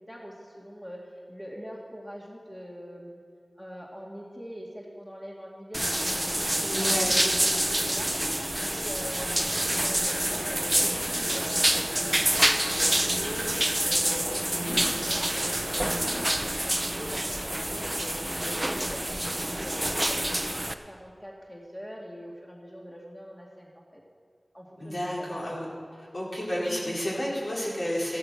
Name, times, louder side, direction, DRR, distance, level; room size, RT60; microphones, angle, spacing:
voice 1, 0.0-3.2 3.6-7.2 7.6-20.6 20.9-24.0 24.5-25.3, equal, 10° left, -3 dB, 2.2 m, -43 dB
sound 1, 5.7-20.7, right 1 dB, 20° right, 0.9 m, -27 dB
voice 2, 6.7-7.2 14.5-14.8 24.8-25.6 26.0-28.2, equal, 60° left, -5 dB, 4.9 m, -31 dB
14.5 x 13.5 x 6.0 m, 2.1 s
wide cardioid pair, 40°, 0 cm